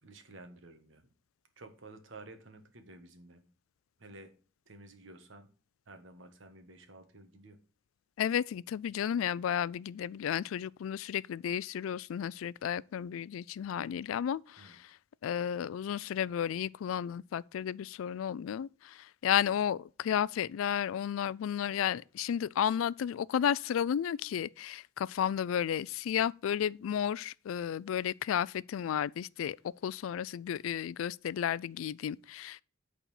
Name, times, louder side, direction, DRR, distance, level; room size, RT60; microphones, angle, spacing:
voice 1, 0.0-1.1 1.6-3.4 4.0-4.3 4.7-5.5 5.9-7.6 14.6-14.8, right 2 dB, 65° right, 1.4 m, -52 dB
voice 2, 8.2-14.8 15.2-29.6 29.8-32.6, left 9 dB, 85° left, 0.3 m, -33 dB
8.4 x 4.2 x 7.0 m
head